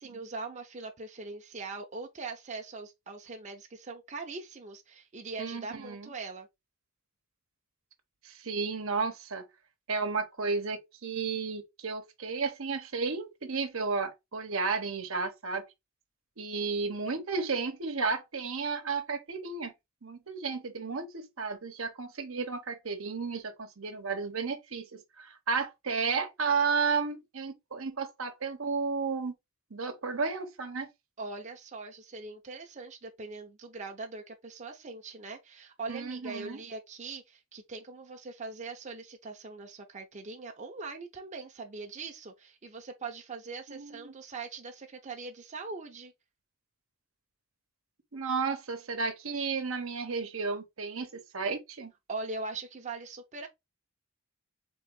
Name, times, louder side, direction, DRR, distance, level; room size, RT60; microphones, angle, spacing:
voice 1, 0.0-6.5 31.2-46.1 52.1-53.5, right 3 dB, 35° right, 0.7 m, -41 dB
voice 2, 5.4-6.1 8.2-9.4 9.9-15.6 16.4-19.7 20.0-29.3 29.7-30.9 35.9-36.6 43.7-44.1 48.1-51.9, right 4 dB, 80° right, 1.0 m, -33 dB
3.9 x 3.5 x 3.7 m
head